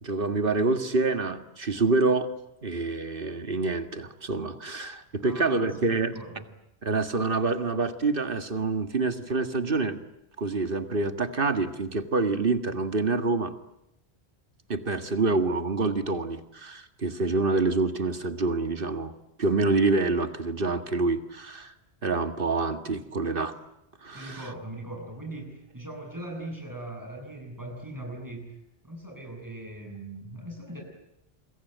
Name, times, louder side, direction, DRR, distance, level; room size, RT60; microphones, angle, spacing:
voice 1, 0.0-2.3 2.6-6.1 6.8-10.0 10.4-13.5 14.7-19.1 19.4-21.7 22.0-23.5 24.0-24.4, right 3 dB, 55° right, 9 dB, 2.0 m, -27 dB
voice 2, 5.2-6.4 24.1-28.5 28.8-30.8, right 1 dB, 15° right, 1 dB, 7.9 m, -40 dB
27.5 x 22.5 x 9.3 m, 0.84 s
omnidirectional pair, 1.1 m